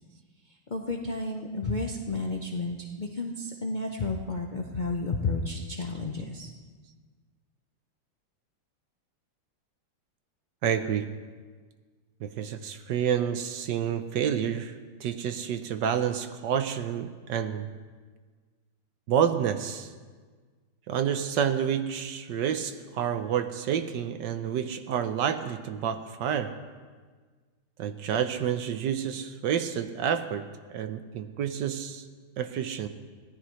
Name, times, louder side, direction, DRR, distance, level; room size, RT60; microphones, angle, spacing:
voice 1, 0.7-6.5, left 3 dB, 65° left, 0 dB, 0.4 m, -32 dB
voice 2, 10.6-11.1 12.2-17.7 19.1-19.9 20.9-26.6 27.8-32.0 32.4-32.9, right 8 dB, 70° right, 9 dB, 1.2 m, -29 dB
24.0 x 16.5 x 3.2 m, 1.5 s
omnidirectional pair, 2.3 m